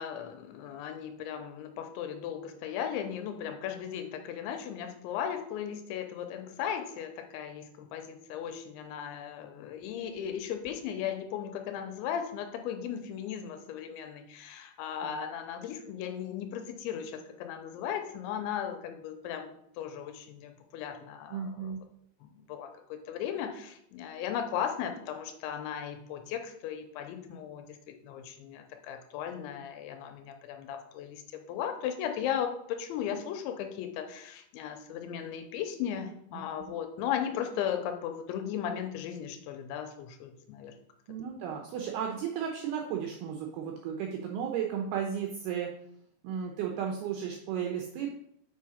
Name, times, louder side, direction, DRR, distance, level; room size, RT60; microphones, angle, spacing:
voice 1, 0.0-21.5 22.2-40.8, left 9 dB, 85° left, 6 dB, 3.0 m, -36 dB
voice 2, 21.3-21.8 36.3-36.4 41.1-45.7 46.2-48.1, right 8 dB, 80° right, 2 dB, 2.3 m, -34 dB
6.6 x 5.6 x 5.0 m, 0.72 s
omnidirectional pair, 5.4 m